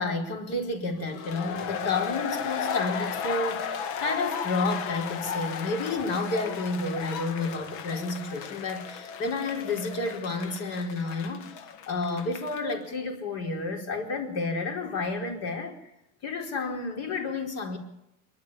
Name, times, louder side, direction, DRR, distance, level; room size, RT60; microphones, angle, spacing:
voice 1, 0.0-11.5 11.9-15.9 16.2-17.8, left 3 dB, 50° left, 3 dB, 4.8 m, -31 dB
sound 1, 1.1-12.7, left 7 dB, 70° left, 1.6 m, -35 dB
27.0 x 12.0 x 8.5 m, 0.84 s
cardioid pair, 175°, 32 cm